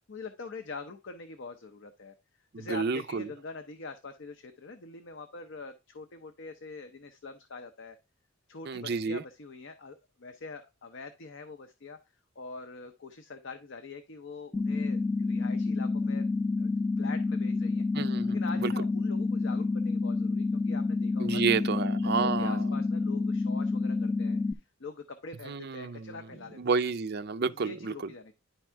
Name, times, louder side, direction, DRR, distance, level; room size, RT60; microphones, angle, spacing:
voice 1, 0.1-2.1 2.6-8.0 8.5-12.0 12.4-16.3 16.6-17.8 18.3-21.7 22.0-26.6 27.6-28.3, left 4 dB, 55° left, 0.7 m, -44 dB
voice 2, 2.5-3.3 8.7-9.2 17.9-18.7 21.2-22.7 25.5-26.2 26.5-28.1, right 5 dB, 45° right, 0.5 m, -30 dB
sound 1, 14.5-24.5, left 3 dB, 10° left, 0.5 m, -29 dB
10.0 x 3.6 x 4.5 m
head